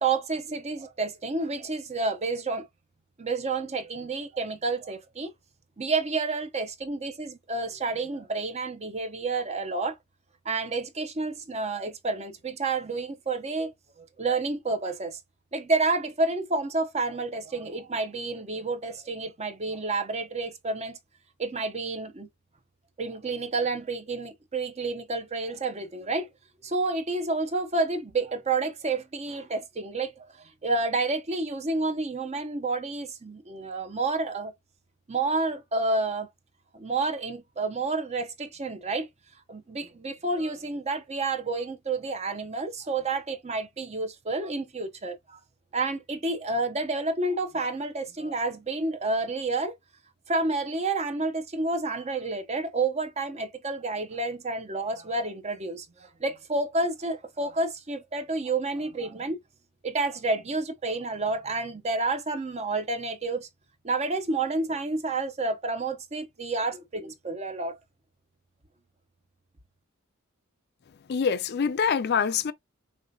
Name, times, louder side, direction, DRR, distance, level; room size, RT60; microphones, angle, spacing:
voice 1, 0.0-2.7 3.2-5.3 5.8-10.0 10.4-15.2 15.5-21.0 21.4-22.3 23.0-26.3 26.6-34.5 35.1-36.3 36.7-39.1 39.5-45.4 45.7-49.7 50.3-59.4 59.8-63.5 63.8-67.8, right 3 dB, 30° right, 0.7 m, -29 dB
voice 2, 71.1-72.5, left 6 dB, 50° left, 0.4 m, -25 dB
5.5 x 3.2 x 2.7 m
head